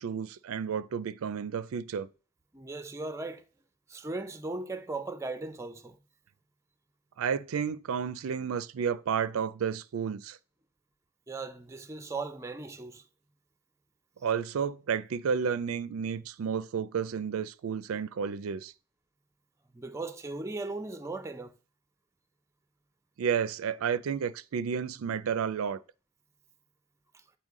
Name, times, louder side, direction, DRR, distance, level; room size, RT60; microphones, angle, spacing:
voice 1, 0.0-2.1 7.2-10.4 14.2-18.7 23.2-25.8, right 7 dB, 85° right, 0.4 m, -31 dB
voice 2, 2.5-3.5 3.9-6.0 11.3-13.0 19.7-21.5, right 3 dB, 15° right, 0.4 m, -37 dB
8.1 x 4.2 x 3.7 m
head